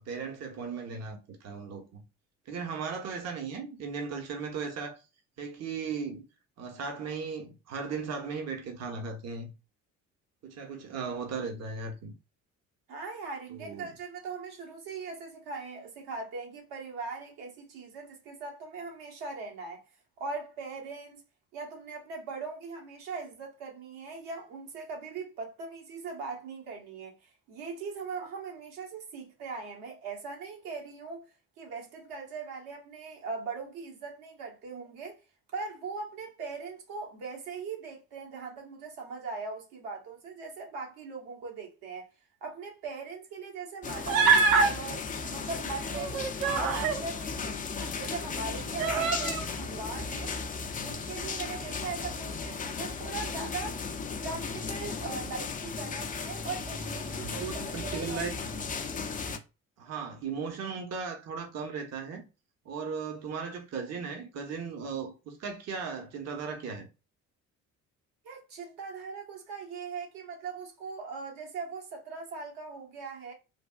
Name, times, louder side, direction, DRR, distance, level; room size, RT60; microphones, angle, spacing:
voice 1, 0.0-2.0 2.5-5.1 5.4-6.2 6.6-9.5 10.4-12.1 13.5-13.9 57.0-58.4 59.8-62.2 62.6-66.9, right 5 dB, 40° right, 0.8 m, -37 dB
voice 2, 12.9-19.8 20.2-21.2 21.5-31.3 31.6-35.2 35.5-42.1 42.4-47.6 48.0-50.3 50.8-53.8 54.2-58.4 68.2-73.3, right 4 dB, 65° right, 1.2 m, -40 dB
sound 1, 43.8-59.4, left 4 dB, 20° left, 0.4 m, -36 dB
Human voice, 44.1-44.7 45.9-47.0 47.8-47.9 48.8-49.5, right 5 dB, 85° right, 0.5 m, -24 dB
3.3 x 2.3 x 2.3 m
figure-of-eight pair, 50°, 40 cm